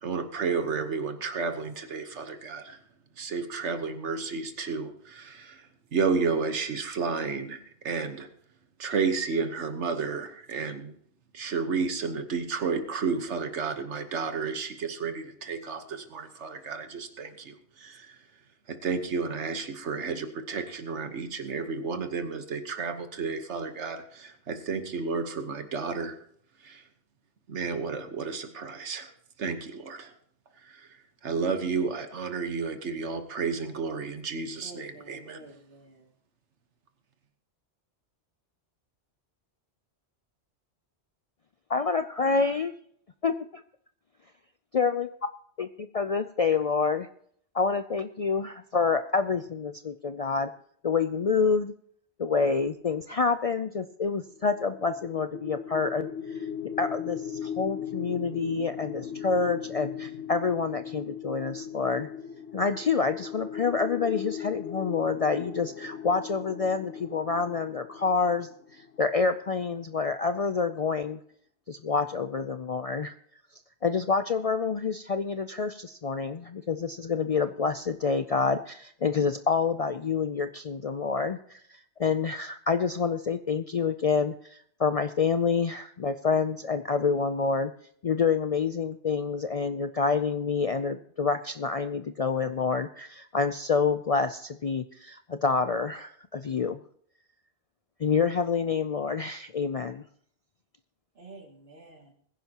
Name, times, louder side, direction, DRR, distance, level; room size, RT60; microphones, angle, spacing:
voice 1, 0.0-2.8 3.2-5.6 5.9-8.3 8.8-10.9 11.3-18.2 18.7-26.2 26.6-26.8 27.5-29.1 29.4-30.1 30.7-30.9 31.2-35.4, right 5 dB, 85° right, 1.5 m, -32 dB
voice 2, 34.6-36.1 101.2-102.1, right 2 dB, 60° right, 2.6 m, -49 dB
voice 3, 41.7-42.7 43.2-43.6 44.7-45.1 45.6-47.1 47.5-50.5 50.8-51.7 52.2-56.5 56.8-62.1 62.5-71.2 71.7-73.1 73.8-87.7 88.0-96.8 98.0-100.0, left 5 dB, 50° left, 0.4 m, -27 dB
sound 1, 54.3-69.4, left 8 dB, 70° left, 1.1 m, -38 dB
21.5 x 10.5 x 2.9 m
omnidirectional pair, 1.2 m